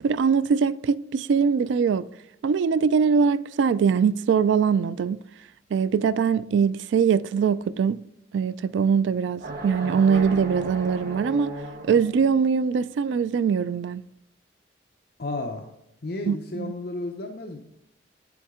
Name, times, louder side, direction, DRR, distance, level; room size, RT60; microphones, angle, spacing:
voice 1, 0.0-2.1 2.4-5.2 5.7-8.0 8.3-11.6 11.8-14.0 16.3-16.7, right 6 dB, 80° right, 0.3 m, -22 dB
sound 1, 9.4-12.3, right 1 dB, 55° right, 1.0 m, -36 dB
voice 2, 15.2-15.7 16.0-17.6, left 2 dB, 55° left, 0.7 m, -32 dB
8.8 x 7.0 x 3.6 m
head